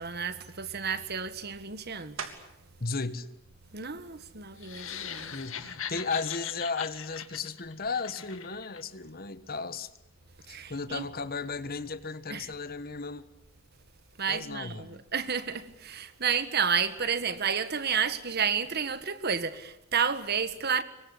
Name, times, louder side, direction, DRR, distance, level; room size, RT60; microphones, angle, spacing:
voice 1, 0.0-2.3 3.7-5.3 10.5-11.0 12.3-12.5 14.2-20.8, right 6 dB, 50° right, 1.7 m, -31 dB
sound 1, 2.2-2.8 3.3-7.8 8.3-13.4 13.7-19.4, right 6 dB, 80° right, 3.3 m, -52 dB
voice 2, 2.8-3.3 5.3-9.9 10.5-13.2 14.3-15.0, left 4 dB, 45° left, 1.4 m, -35 dB
sound 2, 4.6-8.8, left 8 dB, 70° left, 2.2 m, -40 dB
26.0 x 23.5 x 8.6 m
head